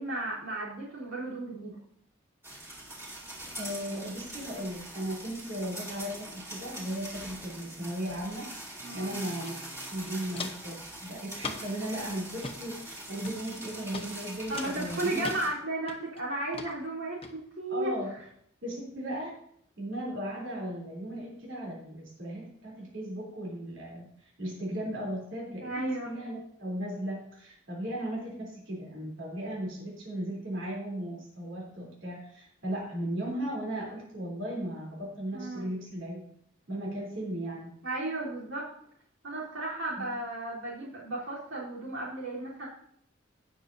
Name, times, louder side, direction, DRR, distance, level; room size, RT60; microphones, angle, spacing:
voice 1, 0.0-1.8 8.8-9.2 14.5-17.9 25.6-26.1 35.3-35.7 37.8-38.7 39.2-42.7, right 2 dB, 85° right, -6 dB, 3.7 m, -34 dB
sound 1, 2.4-15.5, right 1 dB, 15° right, 2.6 m, -43 dB
voice 2, 3.2-9.6 9.9-15.3 17.7-18.1 18.6-19.4 19.8-24.1 24.4-36.3 36.7-37.7 40.0-40.1, right 1 dB, 65° right, -4 dB, 3.6 m, -36 dB
Walk footsteps, 9.4-9.5 9.8-10.7 11.4-11.8 12.3-12.6 13.2-13.6 13.9-14.1 14.6-15.4 15.9-16.2 16.5-16.7 17.2-17.3, left 4 dB, 30° left, 1.0 m, -39 dB
17.5 x 6.5 x 2.8 m, 0.68 s
head